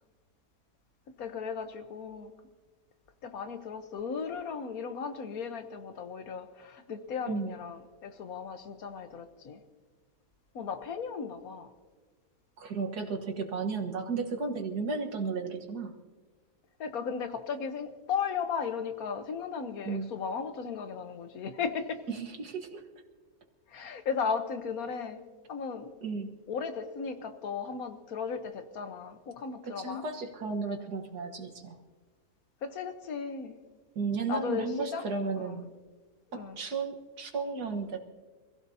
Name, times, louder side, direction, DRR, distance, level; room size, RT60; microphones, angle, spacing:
voice 1, 1.2-2.3 3.2-9.6 10.5-11.7 16.8-22.0 23.7-25.2 25.5-25.9 26.5-30.0 32.6-33.6 34.3-34.7 34.9-35.0 35.4-35.6 36.3-36.6, left 6 dB, 70° left, 8 dB, 1.5 m, -36 dB
voice 2, 12.6-16.0 19.8-20.1 22.1-22.8 26.0-26.3 29.6-31.8 34.0-35.7 36.3-38.0, right 4 dB, 85° right, 3 dB, 2.0 m, -34 dB
26.0 x 16.0 x 2.8 m, 1.4 s
omnidirectional pair, 1.6 m